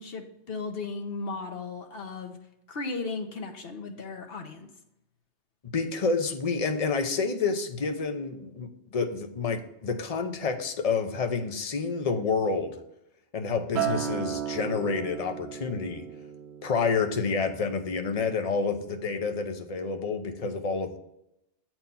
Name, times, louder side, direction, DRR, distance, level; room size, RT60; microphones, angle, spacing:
voice 1, 0.0-2.4 2.7-4.7, left 3 dB, 60° left, 5 dB, 1.2 m, -36 dB
voice 2, 5.7-12.8 13.3-16.1 16.6-21.0, left 4 dB, 35° left, 6 dB, 0.8 m, -29 dB
Acoustic guitar, 13.7-18.2 18.6-18.9, right 8 dB, 75° right, 1.0 m, -35 dB
8.0 x 4.5 x 5.6 m, 0.83 s
omnidirectional pair, 1.2 m